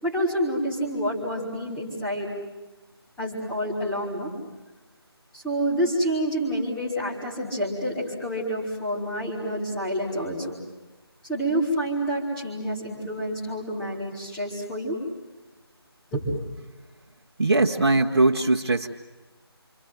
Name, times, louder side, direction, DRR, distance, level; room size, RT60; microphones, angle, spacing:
voice 1, 0.0-2.3 3.2-4.3 5.3-10.6 11.3-15.0 16.1-16.3, equal, 5° left, -7 dB, 4.7 m, -28 dB
voice 2, 17.4-18.9, right 2 dB, 55° right, -1 dB, 1.8 m, -20 dB
28.5 x 26.0 x 7.9 m, 1.1 s
figure-of-eight pair, 160°, 14 cm